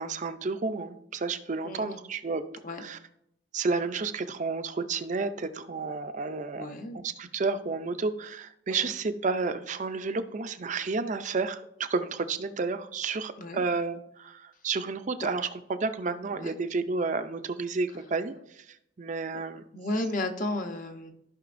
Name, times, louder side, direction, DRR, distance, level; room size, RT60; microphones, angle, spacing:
voice 1, 0.0-2.4 2.8-3.0 3.5-6.7 6.9-18.7 19.0-19.6, right 4 dB, 40° right, 9 dB, 0.5 m, -31 dB
voice 2, 1.6-2.0 2.6-2.8 6.5-7.0 8.7-8.9 13.4-13.6 16.3-16.6 19.7-21.1, left 2 dB, 45° left, 5 dB, 0.9 m, -33 dB
14.5 x 5.7 x 2.6 m, 0.77 s
head